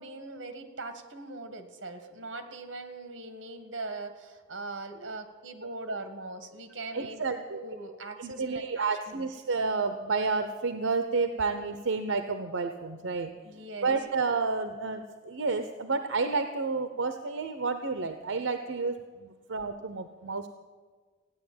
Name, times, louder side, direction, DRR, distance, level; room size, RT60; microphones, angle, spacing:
voice 1, 0.0-8.9 9.1-9.3 13.4-14.0, right 2 dB, 65° right, 8 dB, 1.8 m, -41 dB
voice 2, 6.9-7.6 8.2-13.3 13.8-20.5, right 4 dB, 85° right, 8 dB, 0.8 m, -30 dB
15.5 x 9.8 x 8.6 m, 1.5 s
head